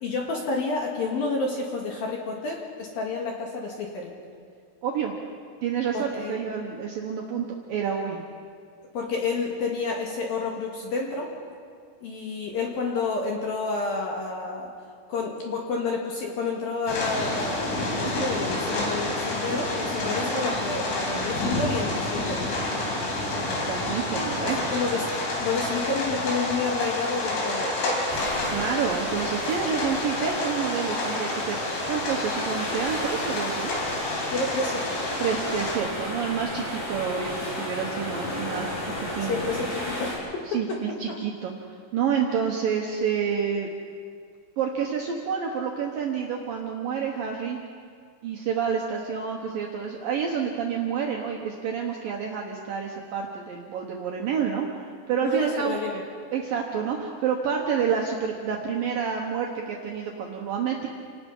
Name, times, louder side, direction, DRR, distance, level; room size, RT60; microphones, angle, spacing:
voice 1, 0.0-4.1 5.9-6.4 8.9-11.3 12.0-14.7 15.1-22.5 24.5-25.0 25.4-27.8 34.3-35.0 39.2-40.8 55.2-56.0, left 3 dB, 60° left, 0 dB, 2.8 m, -29 dB
voice 2, 4.8-5.1 5.6-8.2 23.5-24.6 28.5-33.8 35.2-38.7 39.1-39.4 40.5-41.5 41.9-43.7 44.6-47.6 48.2-55.8 56.3-60.9, right 7 dB, 85° right, 0 dB, 2.0 m, -28 dB
sound 1, 16.9-35.8, left 2 dB, 75° left, 6.2 m, -29 dB
sound 2, 28.1-40.2, left 1 dB, 40° left, 7.0 m, -34 dB
28.5 x 19.0 x 5.5 m, 2.2 s
omnidirectional pair, 6.0 m